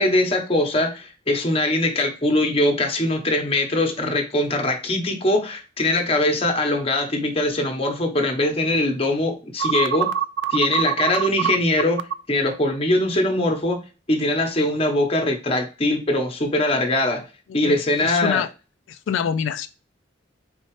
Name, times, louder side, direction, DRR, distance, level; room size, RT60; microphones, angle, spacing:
voice 1, 0.0-10.1 10.5-13.8 14.1-17.2 17.5-18.4, left 1 dB, 30° left, 0.9 m, -22 dB
sound 1, 9.6-12.1, right 9 dB, 70° right, 0.4 m, -23 dB
voice 2, 17.5-18.5 18.9-19.7, left 7 dB, 85° left, 0.3 m, -26 dB
4.2 x 4.1 x 3.1 m
head